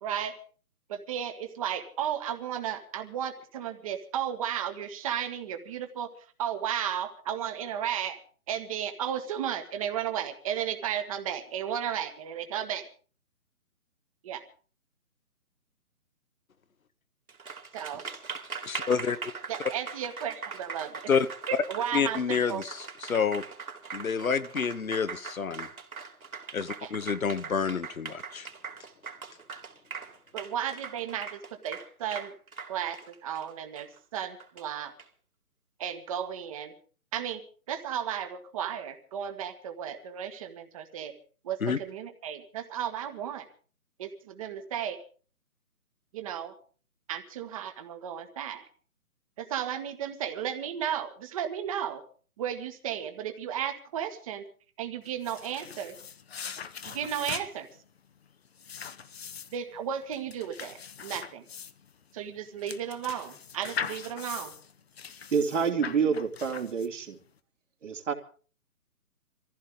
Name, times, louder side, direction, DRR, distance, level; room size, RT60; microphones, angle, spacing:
voice 1, 0.0-0.4 0.9-6.1 6.4-8.2 8.5-12.9 14.2-14.4 17.7-18.0 19.5-21.0 21.5-22.6 26.8-26.9 30.3-32.3 32.7-34.9 35.8-36.7 37.1-37.4 37.7-41.1 41.4-43.5 44.0-45.0 46.1-46.5 47.1-48.7 49.4-52.0 52.4-54.4 54.8-55.9 56.8-57.7 59.5-61.4 62.1-64.5, right 9 dB, 25° right, 8 dB, 1.5 m, -34 dB
Applause, 17.3-35.0, right 5 dB, 70° right, 3.5 m, -41 dB
voice 2, 18.6-19.2 21.1-21.3 21.9-23.4 23.9-25.7 26.5-28.5 41.6-41.8, left 6 dB, 65° left, 12 dB, 1.2 m, -28 dB
sound 1, 55.0-67.2, left 7 dB, 45° left, 1.0 m, -41 dB
voice 3, 65.3-67.2 67.8-68.1, right 6 dB, 55° right, 4 dB, 2.9 m, -28 dB
24.5 x 15.0 x 3.7 m, 0.40 s
figure-of-eight pair, 145°, 44 cm